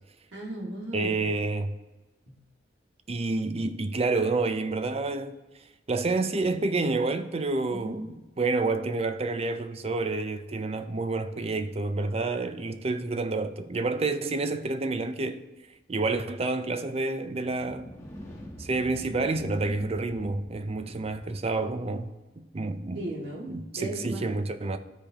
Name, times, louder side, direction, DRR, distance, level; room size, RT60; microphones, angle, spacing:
voice 1, 0.3-1.3 7.7-8.0 19.6-19.8 22.9-24.3, right 1 dB, 90° right, 2.1 m, -36 dB
voice 2, 0.9-1.7 3.1-5.4 5.9-15.4 15.9-17.9 18.6-22.1 22.4-23.0 23.5-24.8, right 3 dB, 35° right, 0.5 m, -29 dB
sound 1, 17.2-22.1, equal, 15° left, 1.3 m, -46 dB
13.0 x 5.1 x 2.9 m
head